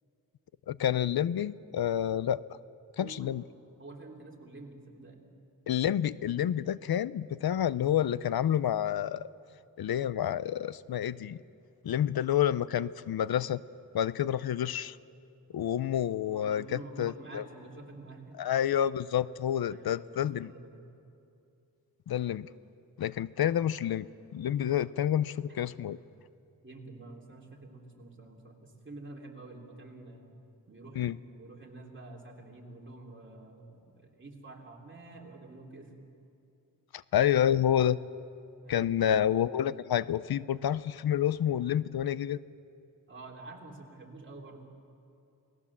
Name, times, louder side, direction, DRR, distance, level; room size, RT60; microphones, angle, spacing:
voice 1, 0.7-2.4 3.0-3.4 5.7-9.3 9.8-11.4 11.8-13.6 13.9-15.0 15.5-17.4 18.4-20.5 22.1-22.5 23.0-24.1 24.3-26.0 31.0-31.2 36.9-38.0 38.7-42.4, left 10 dB, 80° left, 18 dB, 0.5 m, -29 dB
voice 2, 3.0-3.3 3.8-5.2 16.2-18.4 19.7-20.8 26.6-30.3 30.7-35.9 38.6-38.9 39.5-39.6 43.1-44.6, right 2 dB, 30° right, -1 dB, 3.2 m, -48 dB
29.0 x 19.0 x 7.3 m, 2.7 s
wide cardioid pair, 140°, 36 cm